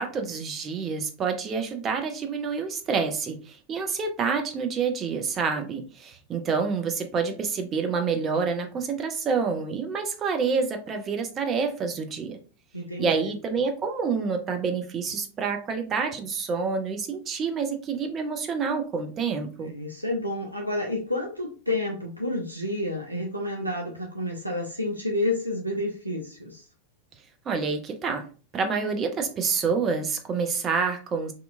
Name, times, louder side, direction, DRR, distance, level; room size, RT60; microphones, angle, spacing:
voice 1, 0.0-12.4 13.0-19.7 27.5-28.2 28.5-31.3, right 5 dB, 25° right, 5 dB, 0.5 m, -28 dB
voice 2, 12.7-13.3 19.6-26.6, left 1 dB, 85° right, 1 dB, 0.4 m, -30 dB
2.8 x 2.2 x 2.4 m, 0.37 s
figure-of-eight pair, 90°, 0 cm